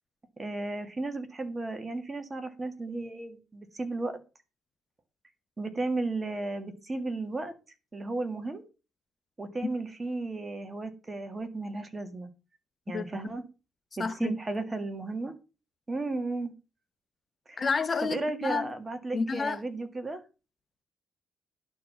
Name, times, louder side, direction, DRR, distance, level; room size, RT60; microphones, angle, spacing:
voice 1, 0.4-4.2 5.6-7.5 7.9-8.6 9.4-12.3 12.9-13.4 14.0-15.4 15.9-16.5 17.5-17.6 18.0-20.2, right 2 dB, 25° right, 1.9 m, -34 dB
voice 2, 14.0-14.4 17.6-18.7 19.1-19.6, left 4 dB, 35° left, 0.9 m, -29 dB
11.5 x 4.5 x 6.9 m
cardioid pair, 90°, 0 cm